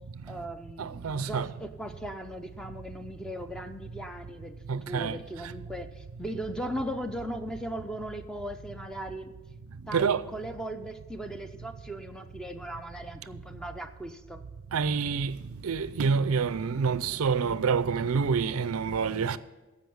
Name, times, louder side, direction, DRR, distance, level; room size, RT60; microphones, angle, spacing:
voice 1, 0.3-9.3 9.9-14.4, right 1 dB, 5° left, 0.6 m, -38 dB
voice 2, 0.8-1.5 4.7-5.2 9.9-10.2 14.7-15.4 15.6-19.4, right 5 dB, 85° right, 0.5 m, -27 dB
14.0 x 5.4 x 7.0 m
head